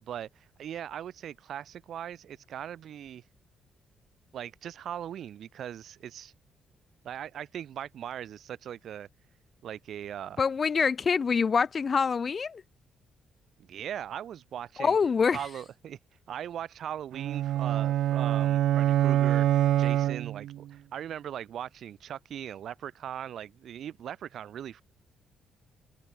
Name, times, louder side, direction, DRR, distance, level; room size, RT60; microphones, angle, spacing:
voice 1, 0.0-3.2 4.3-6.3 7.0-9.1 9.6-10.4 13.6-15.0 15.3-16.0 16.3-24.8, right 10 dB, 65° right, 3.3 m, -39 dB
voice 2, 10.4-12.6 14.8-15.4, left 5 dB, 35° left, 2.5 m, -25 dB
sound 1, 17.1-20.7, right 13 dB, 80° right, 0.5 m, -25 dB
cardioid pair, 120°, 0 cm